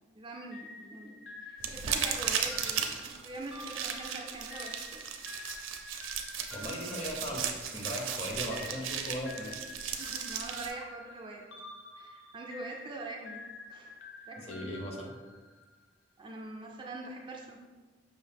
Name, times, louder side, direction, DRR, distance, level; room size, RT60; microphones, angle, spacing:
voice 1, 0.1-5.0 9.9-11.4 12.0-14.0 14.3-14.7 16.2-17.6, right 2 dB, 25° right, 0 dB, 0.4 m, -44 dB
sound 1, 0.5-7.9 8.5-15.7, left 3 dB, 75° left, 0.6 m, -49 dB
sound 2, 1.6-10.7, right 7 dB, 85° right, 0.4 m, -36 dB
voice 2, 6.5-9.6 14.3-15.1, equal, 35° left, 0 dB, 0.7 m, -38 dB
5.5 x 2.6 x 3.4 m, 1.3 s
head